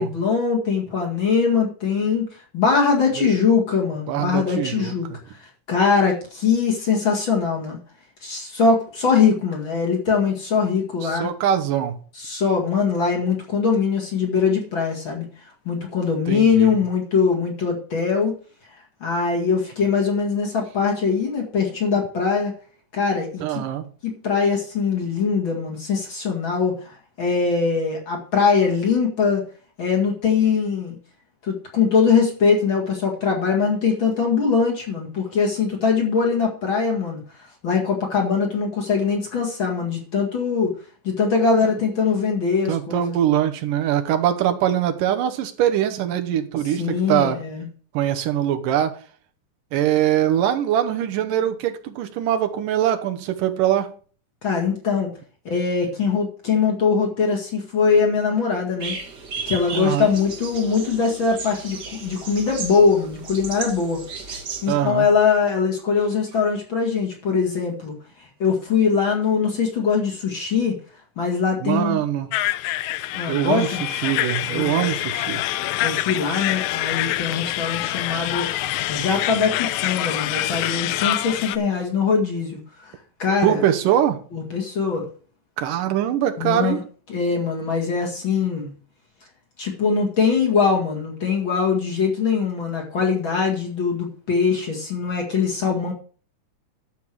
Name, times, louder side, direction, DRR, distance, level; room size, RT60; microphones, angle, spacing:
voice 1, 0.0-2.3 2.5-5.1 5.7-7.8 8.2-11.3 12.2-15.2 15.7-18.4 19.0-22.5 22.9-23.6 24.0-29.4 29.8-31.0 31.4-37.2 37.6-40.7 41.0-43.0 46.8-47.6 54.4-55.1 55.5-59.0 59.5-64.0 64.6-67.9 68.4-70.8 71.2-72.0 73.1-73.8 74.5-74.9 75.8-78.5 78.9-82.6 82.9-83.0 83.2-83.6 84.3-85.0 86.4-86.8 87.1-88.7 89.6-95.9, left 5 dB, 40° left, 2.3 m, -22 dB
voice 2, 4.1-4.9 11.0-12.0 16.3-16.8 23.4-23.9 42.7-47.4 47.9-48.9 49.7-53.9 59.7-60.1 64.7-65.1 71.6-72.3 73.3-75.4 83.4-84.2 85.6-86.8, right 11 dB, 85° right, 2.6 m, -22 dB
sound 1, 58.8-64.7, right 5 dB, 50° right, 1.4 m, -34 dB
sound 2, 72.3-81.6, left 15 dB, 80° left, 1.6 m, -26 dB
12.0 x 7.1 x 4.6 m
omnidirectional pair, 3.8 m